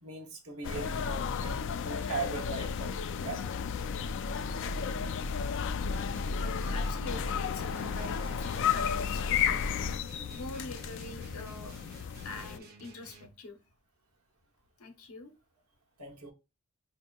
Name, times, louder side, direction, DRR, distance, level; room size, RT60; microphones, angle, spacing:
voice 1, 0.0-3.6 16.0-16.3, right 4 dB, 70° right, 0.9 m, -40 dB
sound 1, 0.6-12.6, left 6 dB, 55° left, 0.3 m, -33 dB
sound 2, 5.9-13.3, right 3 dB, 45° right, 0.6 m, -52 dB
voice 2, 6.4-9.6 10.3-11.8 12.2-13.6 14.8-15.3, left 2 dB, 70° left, 0.8 m, -44 dB
5.1 x 2.8 x 2.2 m
head